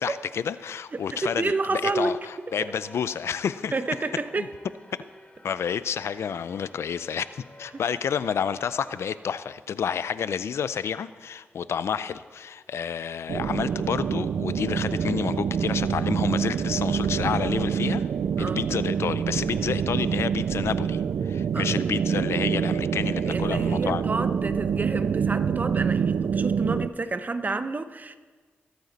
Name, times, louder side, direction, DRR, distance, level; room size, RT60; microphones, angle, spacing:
voice 1, 0.0-3.7 4.4-4.5 5.4-18.0 18.4-24.0, left 7 dB, 80° left, 15 dB, 0.4 m, -30 dB
voice 2, 0.9-2.2 2.6-2.7 3.7-4.5 18.4-18.6 21.5-21.9 23.3-28.2, right 3 dB, 40° right, 11 dB, 0.8 m, -29 dB
sound 1, 2.2-9.2, equal, 25° left, 2.7 m, -52 dB
sound 2, 13.3-26.9, right 7 dB, 75° right, 0.3 m, -26 dB
20.5 x 9.1 x 4.1 m, 1.5 s
cardioid pair, 55°, 4 cm